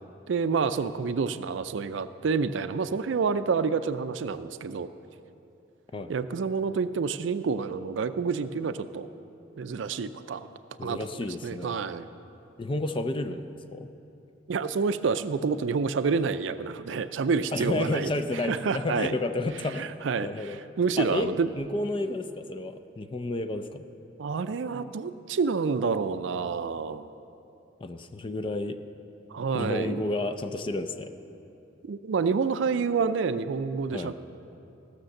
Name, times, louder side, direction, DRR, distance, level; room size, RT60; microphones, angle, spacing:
voice 1, 0.3-4.9 6.1-9.1 9.6-10.5 10.8-12.1 14.5-18.1 18.4-19.1 19.8-21.5 24.2-27.1 29.3-30.0 31.8-34.1, right 5 dB, 75° right, 12 dB, 0.4 m, -28 dB
voice 2, 10.8-11.8 12.6-13.9 17.5-19.9 20.2-20.6 21.0-21.3 21.6-23.9 27.8-28.8 29.5-31.1 33.9-34.1, left 2 dB, 25° left, 9 dB, 0.5 m, -31 dB
15.5 x 6.7 x 6.5 m, 2.8 s
head